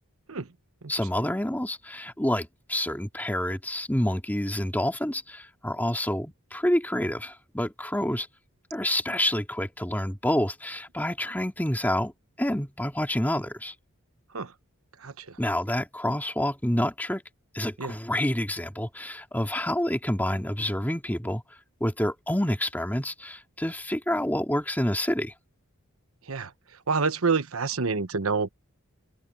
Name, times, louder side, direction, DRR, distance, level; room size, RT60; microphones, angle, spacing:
voice 1, 0.9-8.3 8.7-12.1 12.4-13.7 15.4-17.2 17.5-21.4 21.8-25.3, left 1 dB, 10° left, 2.2 m, -28 dB
voice 2, 26.9-28.5, right 4 dB, 75° right, 1.1 m, -27 dB
open air
head